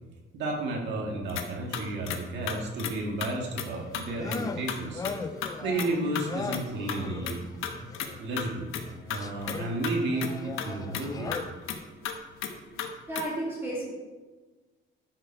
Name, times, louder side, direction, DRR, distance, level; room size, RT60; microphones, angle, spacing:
voice 1, 0.3-5.0 5.6-7.4 8.2-8.7 9.1-11.3, right 2 dB, 60° right, 0 dB, 1.8 m, -32 dB
sound 1, 1.3-1.5 1.7-2.2 2.5-2.9 3.2-3.3 3.6-3.7 3.9-4.0 4.3-4.8 5.0-5.1 5.4-5.5 5.8-5.9 6.1-6.3 6.5-6.6 6.9-7.0 7.3-8.1 8.4-8.5 8.7-8.8 9.1-9.9 10.2-10.3 10.6-10.7 10.9-11.0 11.3-11.8 12.0-12.1 12.4-13.2, left 9 dB, 85° left, 1.1 m, -33 dB
sound 2, 3.7-8.3 8.8-11.4, left 4 dB, 20° left, 0.4 m, -39 dB
voice 2, 13.1-13.8, right 1 dB, 10° right, -7 dB, 2.9 m, -32 dB
11.5 x 6.7 x 4.5 m, 1.3 s
cardioid pair, 170°, 20 cm